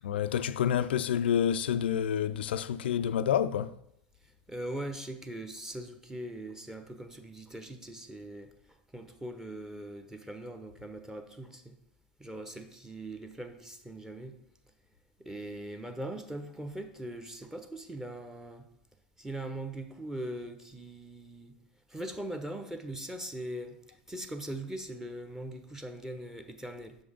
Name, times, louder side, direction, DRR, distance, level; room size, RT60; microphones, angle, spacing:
voice 1, 0.0-3.8, left 9 dB, 70° left, 0.3 m, -28 dB
voice 2, 4.2-11.8 12.2-14.4 15.2-18.7 19.2-21.6 21.9-27.0, right 1 dB, 10° right, 0.8 m, -41 dB
6.4 x 5.3 x 5.0 m
figure-of-eight pair, 80°, 6 cm